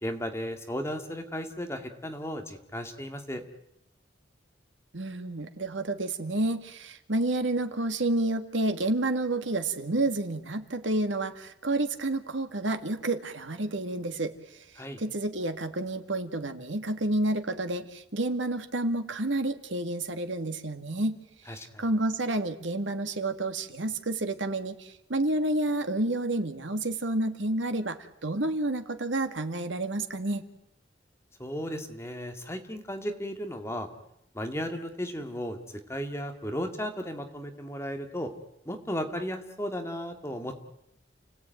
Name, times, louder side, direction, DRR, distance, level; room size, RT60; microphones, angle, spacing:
voice 1, 0.0-3.4 14.8-15.0 21.5-21.8 31.4-33.9 34.3-35.6 35.9-38.3 38.7-40.6, equal, 15° left, 5 dB, 2.2 m, -35 dB
voice 2, 4.9-14.3 15.0-21.2 21.6-30.4, right 2 dB, 90° right, 8 dB, 2.1 m, -30 dB
29.5 x 17.5 x 9.3 m, 0.82 s
head